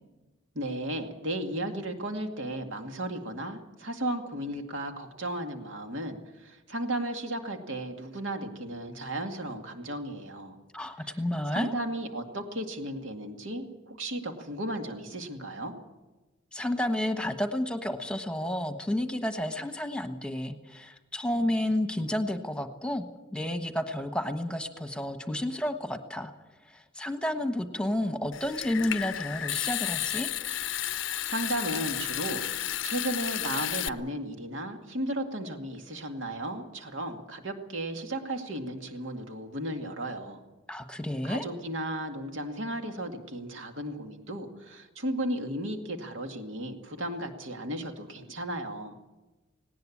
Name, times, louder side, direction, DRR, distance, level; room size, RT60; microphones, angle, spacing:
voice 1, 0.5-10.5 11.5-15.7 31.3-40.4 41.2-49.0, right 1 dB, 75° right, 4 dB, 2.2 m, -35 dB
voice 2, 10.7-11.7 16.5-23.0 23.3-26.3 26.7-30.3 40.7-41.5, left 1 dB, 5° left, 7 dB, 1.2 m, -31 dB
Water tap faucet / Sink (filling or washing) / Trickle dribble, 28.3-33.9, left 12 dB, 75° left, 0.6 m, -32 dB
18.5 x 18.5 x 8.6 m, 1.1 s
head